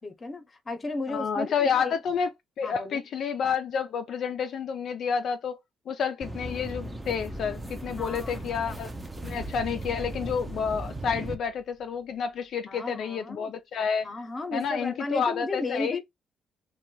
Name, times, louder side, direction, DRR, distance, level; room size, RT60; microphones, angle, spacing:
voice 1, 0.0-1.9 2.6-3.1 8.0-8.4 12.7-13.5 14.0-16.0, left 3 dB, 30° left, 0.7 m, -34 dB
voice 2, 1.1-2.3 2.6-5.6 5.9-8.9 9.2-14.1 14.5-16.0, left 6 dB, 65° left, 0.3 m, -29 dB
sound 1, 6.2-11.4, right 1 dB, 15° right, 0.5 m, -37 dB
sound 2, 11.3-12.3, right 5 dB, 60° right, 0.7 m, -47 dB
2.6 x 2.2 x 2.9 m
cardioid pair, 90°, 0 cm